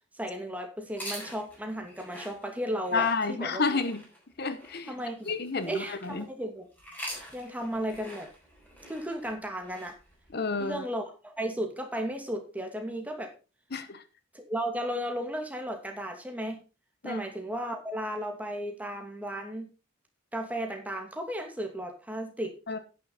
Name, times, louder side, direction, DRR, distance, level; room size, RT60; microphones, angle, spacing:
voice 1, 0.1-3.8 4.9-5.3 5.6-6.7 7.3-8.3 8.9-10.0 10.6-13.3 14.3-16.6 17.0-19.7 20.3-22.5, equal, 10° right, 2.4 m, -34 dB
sound 1, 0.9-6.2 6.7-10.8, equal, 10° left, 4.7 m, -45 dB
voice 2, 2.9-4.0 4.4-4.9 5.3-6.3 10.3-10.8 13.7-14.0 17.0-17.2 22.7-22.8, left 4 dB, 55° left, 1.0 m, -30 dB
10.5 x 10.0 x 4.2 m
head